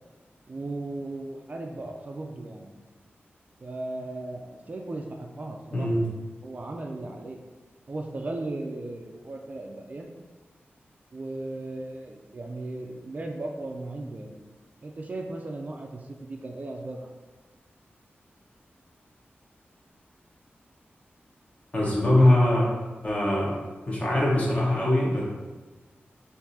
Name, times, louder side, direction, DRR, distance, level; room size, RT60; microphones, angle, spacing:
voice 1, 0.5-2.7 3.6-5.9 6.4-7.4 7.9-10.1 11.1-14.4 14.8-17.1, right 2 dB, 40° right, 2 dB, 0.3 m, -36 dB
voice 2, 5.7-6.0 21.7-22.7 23.0-23.5 23.9-25.2, left 1 dB, 35° left, -5 dB, 1.0 m, -22 dB
4.6 x 2.6 x 2.7 m, 1.3 s
wide cardioid pair, 120°, 4 cm